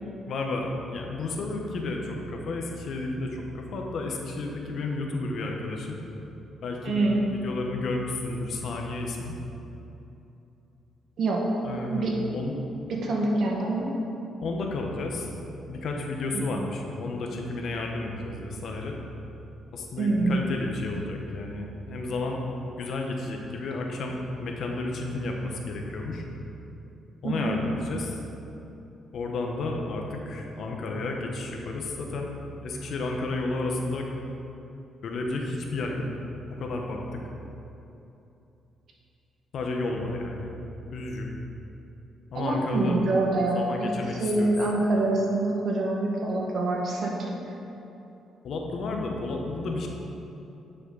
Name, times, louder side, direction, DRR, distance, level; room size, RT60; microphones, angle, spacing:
voice 1, 0.3-6.0 6.6-7.0 7.3-9.4 11.6-12.6 14.4-15.3 15.6-19.0 19.7-22.4 22.8-26.2 27.2-28.2 29.1-32.3 32.6-34.1 35.0-36.1 36.5-37.2 39.5-40.5 40.9-41.3 42.3-43.0 43.5-44.5 48.4-49.9, left 2 dB, 65° left, 1 dB, 1.1 m, -32 dB
voice 2, 6.8-7.2 11.2-11.4 11.9-12.1 12.9-13.9 16.3-16.5 20.0-20.4 27.2-27.5 42.3-43.9 44.2-47.3, right 2 dB, 60° right, -1 dB, 1.6 m, -25 dB
9.8 x 6.1 x 4.0 m, 2.9 s
cardioid pair, 90°, 0 cm